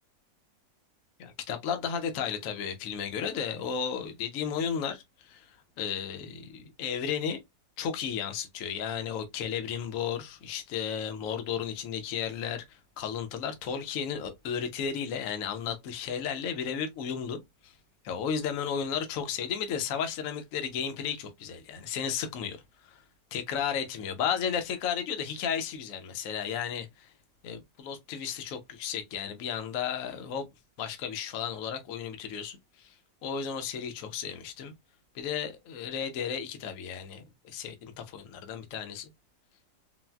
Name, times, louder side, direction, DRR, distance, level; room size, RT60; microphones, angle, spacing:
voice 1, 1.2-7.4 7.8-17.8 18.0-23.0 23.3-27.1 27.4-30.5 30.8-32.9 33.2-34.7 35.1-39.1, left 7 dB, 65° left, 0.9 m, -34 dB
4.0 x 2.0 x 2.2 m
omnidirectional pair, 2.0 m